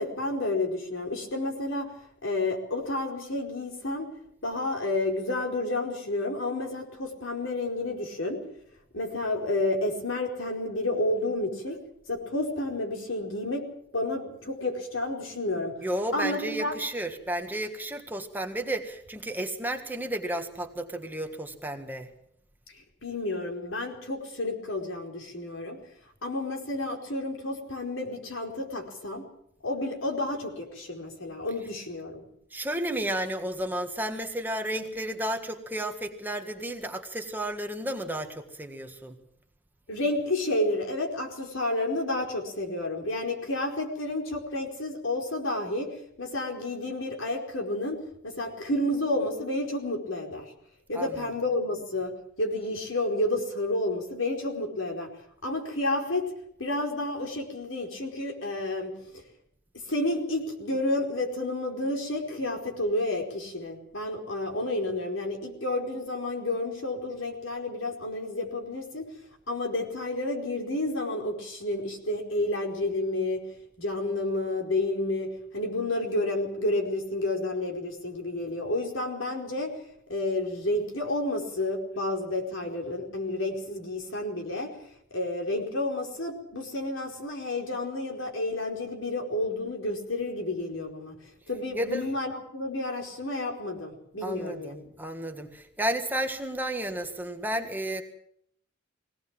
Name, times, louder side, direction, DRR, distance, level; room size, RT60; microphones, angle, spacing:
voice 1, 0.0-1.9 2.2-4.1 4.4-8.4 8.9-11.8 12.1-13.6 13.9-15.7 16.1-16.7 23.0-25.8 26.2-29.2 29.6-32.2 39.9-45.9 46.2-50.4 50.9-52.1 52.4-55.1 55.4-56.2 56.6-58.9 59.9-69.1 69.5-73.4 73.8-75.3 75.5-79.7 80.1-84.7 85.1-91.1 91.5-94.8, left 2 dB, 75° left, 2 dB, 4.7 m, -30 dB
voice 2, 15.8-22.1 32.5-39.2 50.9-51.3 91.7-92.1 94.2-98.0, right 1 dB, 10° right, 4 dB, 1.7 m, -32 dB
22.5 x 18.0 x 7.6 m, 0.71 s
head